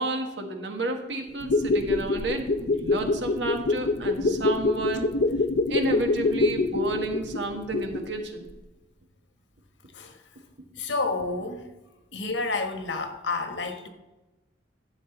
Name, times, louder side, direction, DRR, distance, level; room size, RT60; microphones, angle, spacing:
voice 1, 0.0-5.1 5.7-8.5, right 2 dB, 75° right, 1.6 m, -31 dB
sound 1, 1.3-8.2 8.5-8.6, left 2 dB, 60° left, 0.6 m, -25 dB
voice 2, 10.8-11.7 12.1-13.9, left 3 dB, 80° left, 1.3 m, -30 dB
12.0 x 7.8 x 3.9 m
head